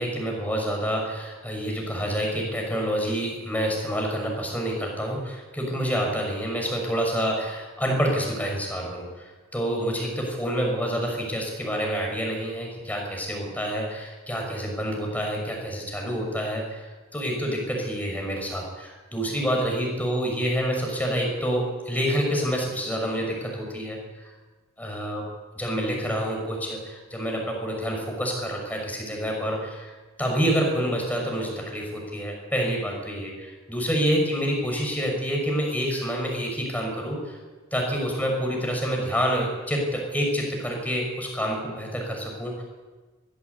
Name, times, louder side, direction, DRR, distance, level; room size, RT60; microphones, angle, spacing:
voice 1, 0.0-24.3 24.8-25.3 25.6-37.4 37.7-42.6, equal, 5° left, 0 dB, 5.9 m, -28 dB
22.0 x 16.0 x 8.2 m, 1.3 s
head